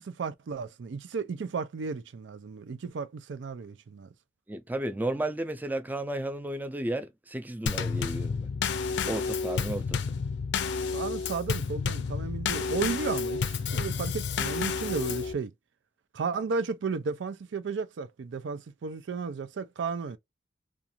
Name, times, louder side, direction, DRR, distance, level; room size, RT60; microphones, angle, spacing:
voice 1, 0.0-4.1 10.9-15.5 16.1-20.2, right 5 dB, 80° right, 0.4 m, -34 dB
voice 2, 4.5-8.5 9.1-10.0, right 1 dB, 10° right, 0.4 m, -33 dB
Drum kit / Snare drum / Bass drum, 7.7-15.3, left 5 dB, 70° left, 0.4 m, -30 dB
2.5 x 2.3 x 2.8 m
head